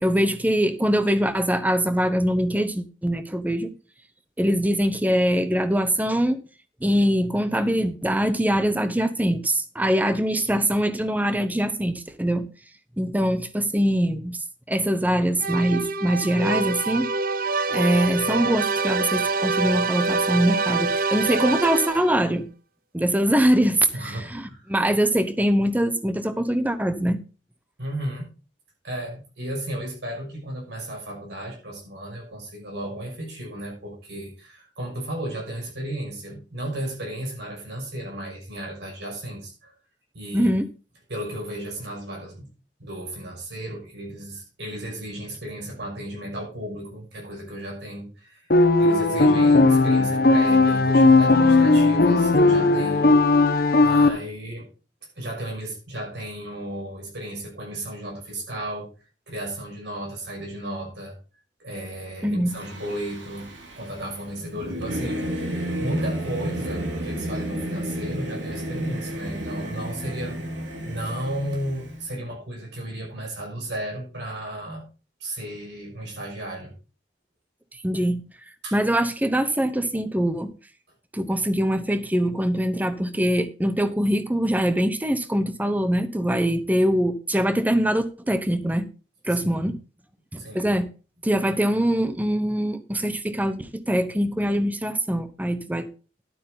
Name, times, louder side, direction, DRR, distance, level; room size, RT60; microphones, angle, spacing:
voice 1, 0.0-3.7 4.4-6.4 6.8-12.5 13.0-14.4 14.7-17.1 17.7-22.5 22.9-27.2 40.3-40.7 62.2-62.5 77.7-78.2 78.7-80.5 81.1-88.9 89.2-89.8 90.3-90.9 91.2-95.9, equal, 10° right, 0.8 m, -23 dB
sound 1, 15.4-22.2, right 3 dB, 50° right, 0.7 m, -25 dB
voice 2, 23.9-24.7 27.8-28.3 28.8-39.8 40.1-40.5 41.1-42.5 42.8-53.1 53.4-54.7 55.2-58.9 59.3-61.1 61.6-74.8 75.2-76.7 78.6-78.8 89.3-89.7 90.4-90.7, right 1 dB, 65° right, 6.2 m, -34 dB
sound 2, 48.5-54.1, left 3 dB, 55° left, 1.1 m, -17 dB
Singing / Musical instrument, 62.5-72.1, right 1 dB, 85° right, 3.1 m, -32 dB
12.0 x 8.4 x 3.9 m
head